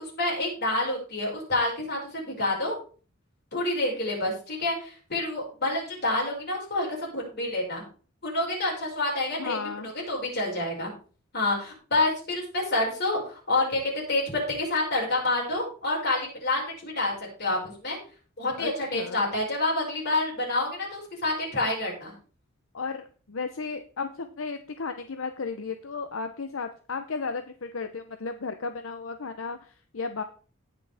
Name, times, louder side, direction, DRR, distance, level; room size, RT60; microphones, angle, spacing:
voice 1, 0.0-2.8 3.5-7.8 8.2-9.6 9.8-10.9 11.3-17.1 17.4-18.0 18.4-22.1, left 2 dB, 50° left, -2 dB, 5.5 m, -28 dB
voice 2, 9.4-9.9 18.6-19.2 22.7-30.2, left 4 dB, 75° left, 8 dB, 0.8 m, -34 dB
18.0 x 6.1 x 3.5 m, 0.39 s
head